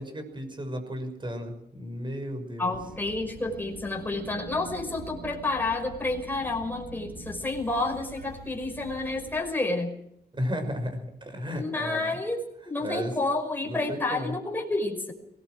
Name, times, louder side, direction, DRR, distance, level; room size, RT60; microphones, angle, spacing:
voice 1, 0.0-2.7 10.3-12.2 12.8-13.2 13.6-14.4, equal, 30° right, 7 dB, 6.0 m, -34 dB
voice 2, 2.6-9.9 11.5-12.4 12.7-15.1, left 2 dB, 10° left, 0 dB, 5.6 m, -30 dB
sound 1, 2.7-9.4, right 2 dB, 70° right, 5.2 m, -44 dB
23.5 x 19.5 x 6.3 m, 0.74 s
wide cardioid pair, 120°, 17 cm